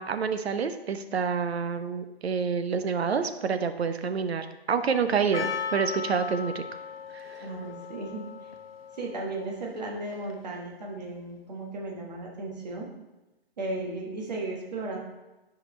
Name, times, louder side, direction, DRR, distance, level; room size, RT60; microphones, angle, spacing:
voice 1, 0.0-6.6 7.1-7.5, right 6 dB, 80° right, 9 dB, 0.8 m, -28 dB
Percussion, 5.3-10.6, left 6 dB, 65° left, 0.9 m, -37 dB
voice 2, 7.4-8.5 9.0-12.9 13.6-15.0, right 2 dB, 40° right, -1 dB, 1.5 m, -35 dB
10.0 x 5.1 x 3.2 m, 1.0 s
hypercardioid pair, 175°, 31 cm